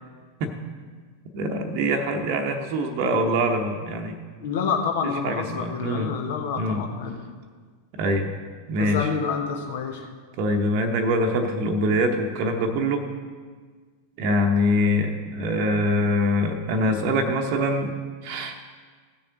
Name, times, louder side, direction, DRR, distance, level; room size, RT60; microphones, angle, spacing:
voice 1, 1.3-4.2 5.2-6.1 6.5-6.8 7.9-8.3 8.7-9.1 10.4-13.1 14.2-18.0 18.2-18.6, equal, 45° right, 4 dB, 0.9 m, -24 dB
voice 2, 4.4-7.3 8.8-10.1, left 6 dB, 55° left, 4 dB, 1.2 m, -28 dB
16.0 x 6.8 x 3.8 m, 1.6 s
figure-of-eight pair, 90°, 0 cm